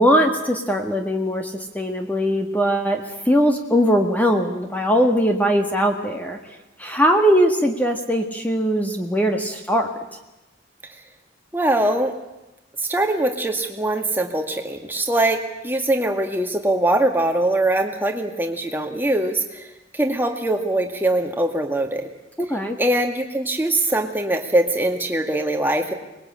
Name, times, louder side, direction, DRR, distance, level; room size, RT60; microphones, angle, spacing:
voice 1, 0.0-6.4 6.8-9.9 22.4-22.8, equal, 10° left, 3 dB, 1.7 m, -20 dB
voice 2, 11.5-12.2 12.8-19.7 19.9-22.1 22.8-25.9, right 1 dB, 10° right, 3 dB, 2.1 m, -22 dB
24.5 x 20.5 x 8.9 m, 0.98 s
head